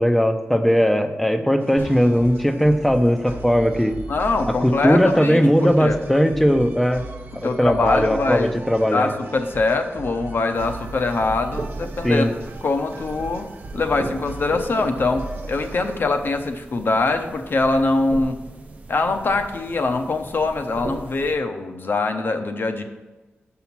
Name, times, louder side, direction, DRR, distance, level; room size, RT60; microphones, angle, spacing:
voice 1, 0.0-4.0 4.5-7.0 7.3-9.1 12.0-12.3, equal, 5° left, 8 dB, 0.6 m, -18 dB
sound 1, 1.6-16.0, right 3 dB, 60° right, 0.9 m, -38 dB
sound 2, 1.8-2.5, left 2 dB, 75° left, 1.4 m, -42 dB
voice 2, 4.1-6.0 7.3-8.5 8.9-12.3 12.6-18.4 18.9-22.8, left 3 dB, 55° left, 7 dB, 0.8 m, -23 dB
sound 3, 10.5-21.4, right 2 dB, 30° right, 0.7 m, -38 dB
6.9 x 5.7 x 6.0 m, 1.2 s
wide cardioid pair, 120°, 4 cm